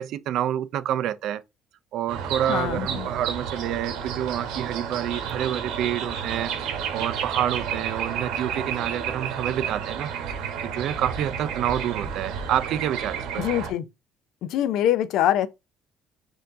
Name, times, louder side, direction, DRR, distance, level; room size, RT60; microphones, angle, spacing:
voice 1, 0.0-1.4 1.9-10.1 10.6-13.4, right 11 dB, 65° right, 0.4 m, -28 dB
sound 1, 2.1-13.7, right 7 dB, 85° right, 1.1 m, -31 dB
voice 2, 2.5-3.1 13.4-13.8 14.4-15.5, left 11 dB, 70° left, 0.4 m, -24 dB
4.5 x 2.6 x 3.6 m
cardioid pair, 150°, 0 cm